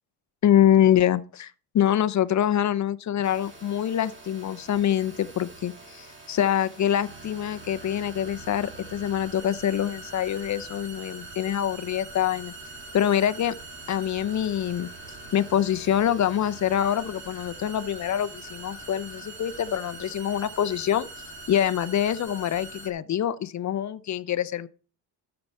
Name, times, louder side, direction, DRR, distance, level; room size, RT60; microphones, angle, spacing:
voice 1, 0.4-12.5 12.9-13.6 13.9-14.9 15.3-21.1 21.5-24.7, left 10 dB, 40° left, 0.5 m, -25 dB
sound 1, 3.2-22.9, right 2 dB, 25° right, 2.2 m, -43 dB
13.0 x 6.9 x 4.1 m
cardioid pair, 160°, 44 cm